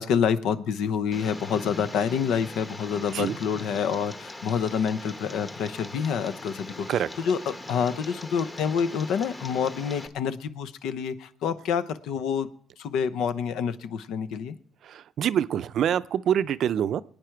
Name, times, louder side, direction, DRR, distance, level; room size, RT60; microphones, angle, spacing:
voice 1, 0.0-12.5 12.8-14.6, left 7 dB, 85° left, 13 dB, 0.7 m, -27 dB
Tick, 1.1-10.1, left 2 dB, 25° left, 1.3 m, -41 dB
voice 2, 14.9-17.0, right 9 dB, 70° right, 15 dB, 0.5 m, -25 dB
21.5 x 9.1 x 4.6 m, 0.63 s
cardioid pair, 90°, 0 cm